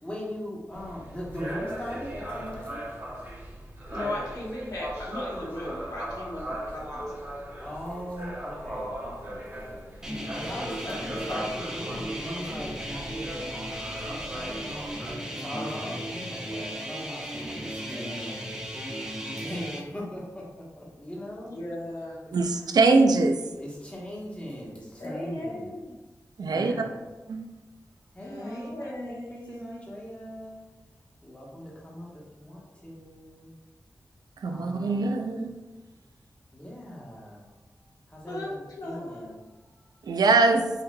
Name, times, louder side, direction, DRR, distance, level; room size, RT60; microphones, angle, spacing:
voice 1, 0.0-2.8 4.0-4.3 7.6-18.5 19.3-21.6 22.3-22.6 23.6-25.8 26.4-27.1 28.1-30.6 31.2-33.5 34.4-35.5 36.5-37.5 38.1-40.2, equal, 20° left, -4 dB, 1.2 m, -40 dB
sound 1, 0.7-15.1, right 1 dB, 30° right, 0.9 m, -39 dB
voice 2, 3.9-7.1 10.8-11.4 15.5-16.7 21.4-22.2 25.0-25.9 28.2-29.8 38.3-38.5 38.8-39.4, left 1 dB, 65° left, -5 dB, 1.3 m, -37 dB
sound 2, 10.0-19.8, equal, 10° right, 0.6 m, -36 dB
voice 3, 22.3-23.4 26.4-26.7 27.3-27.5 34.4-35.5 40.0-40.7, right 3 dB, 90° right, 5 dB, 0.4 m, -22 dB
5.5 x 3.0 x 2.2 m, 1.1 s
wide cardioid pair, 110°, 7 cm